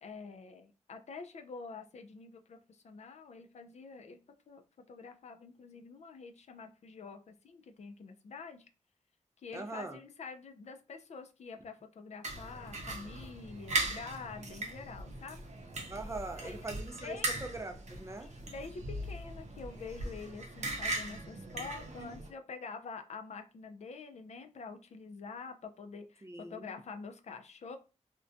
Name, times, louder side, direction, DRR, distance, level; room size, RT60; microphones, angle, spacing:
voice 1, 0.0-4.2 4.5-4.6 4.9-8.7 9.4-15.4 16.4-16.7 17.0-17.3 18.2-27.8, left 4 dB, 65° left, 6 dB, 0.4 m, -47 dB
voice 2, 9.5-10.0 15.9-18.3 22.0-22.1 26.2-26.7, right 2 dB, 25° right, 5 dB, 0.4 m, -42 dB
sound 1, 12.2-22.3, right 2 dB, 65° right, 0.6 m, -39 dB
2.5 x 2.1 x 2.4 m, 0.32 s
wide cardioid pair, 85°, 13 cm